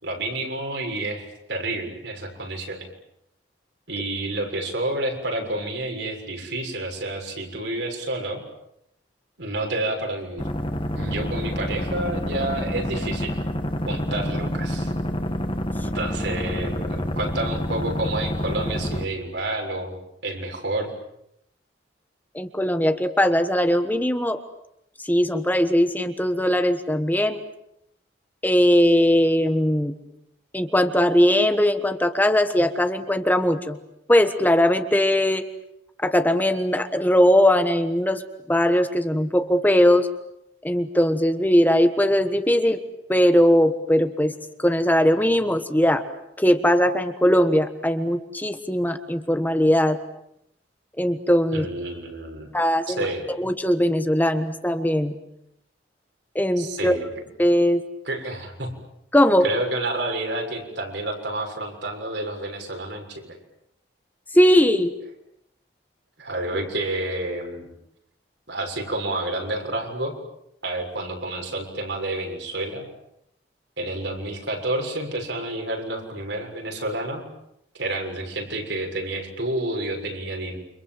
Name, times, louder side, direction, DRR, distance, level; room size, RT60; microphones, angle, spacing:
voice 1, 0.0-2.9 3.9-8.4 9.4-10.5 10.9-13.4 13.9-14.9 15.8-20.0 20.2-20.9 51.5-52.5 52.9-53.3 56.6-57.1 58.1-58.7 59.4-63.4 66.2-67.7 68.5-70.1 70.6-72.9 73.8-77.2 77.7-80.6, right 2 dB, 70° right, 2 dB, 6.8 m, -29 dB
sound 1, 10.4-19.0, equal, 30° left, 2.1 m, -28 dB
voice 2, 22.3-24.4 25.0-27.4 28.4-29.9 30.5-33.8 34.1-35.4 36.0-38.2 38.5-40.1 40.6-42.8 43.1-46.0 46.4-50.0 51.0-51.7 52.5-53.1 53.4-55.1 56.3-56.9 57.4-57.8 59.1-59.5 64.3-64.9, equal, 10° left, 8 dB, 1.3 m, -20 dB
29.5 x 26.0 x 7.6 m, 0.78 s
head